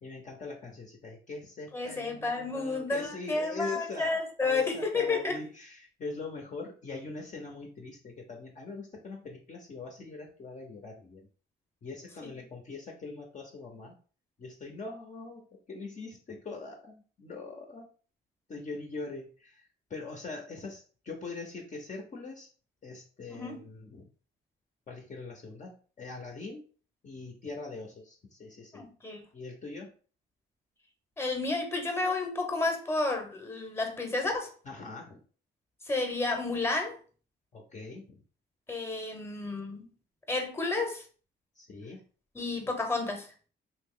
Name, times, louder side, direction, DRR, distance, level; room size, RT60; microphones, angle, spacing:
voice 1, 0.0-11.2 11.8-13.9 14.4-17.9 18.5-22.5 22.8-24.1 24.9-26.7 27.0-28.9 29.3-29.9 34.6-35.2 37.5-38.2 41.6-42.0, left 3 dB, 40° left, 1 dB, 0.7 m, -42 dB
voice 2, 1.7-5.4 23.3-23.6 28.7-29.2 31.2-34.5 35.9-37.0 38.7-39.9 40.3-41.0 42.3-43.3, left 3 dB, 10° left, 4 dB, 0.9 m, -31 dB
2.9 x 2.3 x 3.7 m, 0.39 s
cardioid pair, 90°, 20 cm